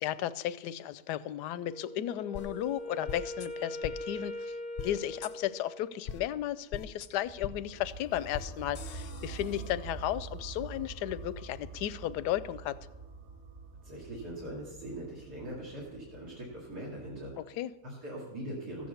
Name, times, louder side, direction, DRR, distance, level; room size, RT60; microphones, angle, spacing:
voice 1, 0.0-12.8 17.4-17.7, left 12 dB, 85° left, 16 dB, 1.2 m, -34 dB
Wind instrument woodwind instrument, 1.7-6.0, left 1 dB, 25° right, 1.5 m, -41 dB
sound 1, 2.4-2.5 3.1-3.5 3.8-3.9 4.8-4.9 5.2-5.3 6.1-6.2 6.7-7.1 7.4-7.5 8.3-8.5 8.8-9.7, left 7 dB, 60° left, 0.6 m, -41 dB
sound 2, 7.2-17.2, right 4 dB, 55° right, 2.9 m, -46 dB
voice 2, 13.8-17.3 17.8-18.9, right 1 dB, 75° right, -6 dB, 3.1 m, -41 dB
14.5 x 7.9 x 6.9 m, 1.0 s
omnidirectional pair, 1.7 m